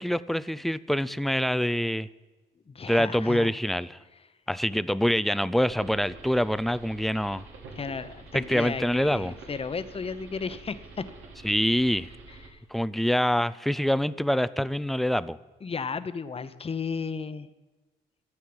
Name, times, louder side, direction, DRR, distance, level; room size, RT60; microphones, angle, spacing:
voice 1, 0.0-2.1 2.9-4.0 4.5-7.4 8.3-9.4 11.4-12.1 12.7-15.4, equal, ahead, 16 dB, 0.4 m, -25 dB
voice 2, 2.7-3.5 4.7-4.8 7.8-11.0 12.3-12.6 15.6-17.5, left 5 dB, 30° left, 12 dB, 0.8 m, -34 dB
sound 1, 5.6-12.5, right 3 dB, 85° right, 2.4 m, -47 dB
13.0 x 8.2 x 7.9 m, 1.2 s
cardioid pair, 90°, 20 cm